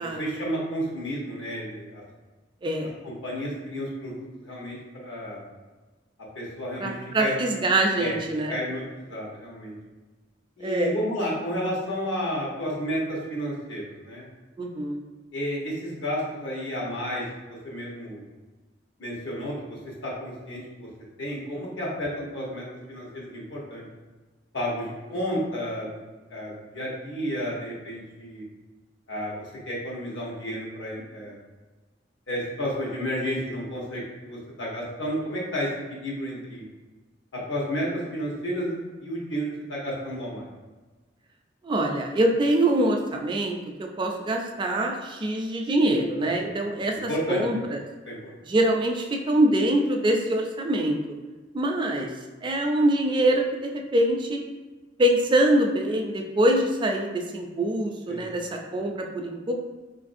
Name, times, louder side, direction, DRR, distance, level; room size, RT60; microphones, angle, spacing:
voice 1, 0.2-2.0 3.0-5.5 6.3-6.9 7.2-7.3 8.0-8.1 8.5-9.7 10.6-14.2 15.3-18.2 19.0-19.8 20.0-20.9 21.2-23.8 24.5-25.9 26.3-28.4 29.1-29.3 29.7-31.4 32.3-36.6 37.5-40.5 46.4-46.5 46.9-47.4 48.1-48.3 58.1-58.3, equal, 75° left, -4 dB, 0.9 m, -31 dB
voice 2, 6.8-8.5 10.6-10.9 14.6-15.0 41.6-47.8 48.4-51.0 51.5-52.1 52.4-54.4 55.0-59.5, right 1 dB, 25° right, 2 dB, 0.3 m, -24 dB
3.9 x 2.5 x 2.5 m, 1.3 s
head